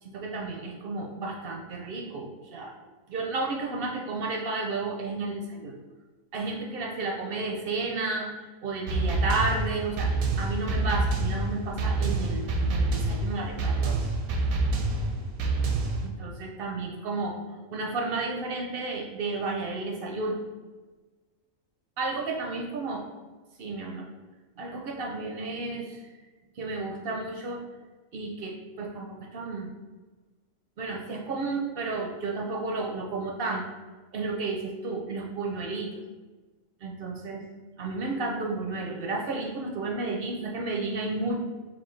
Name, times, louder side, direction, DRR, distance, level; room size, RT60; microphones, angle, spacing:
voice 1, 0.0-2.7 3.1-5.8 6.3-10.1 10.4-14.0 16.0-17.4 17.7-20.4 22.0-23.0 23.6-24.1 24.6-26.0 26.6-27.6 28.1-29.7 30.8-33.6 34.1-35.9 36.8-37.4 37.7-41.4, right 3 dB, 60° right, 1 dB, 0.6 m, -32 dB
sound 1, 8.9-16.1, right 3 dB, 85° right, 1.0 m, -27 dB
5.7 x 2.4 x 3.1 m, 1.3 s
omnidirectional pair, 1.4 m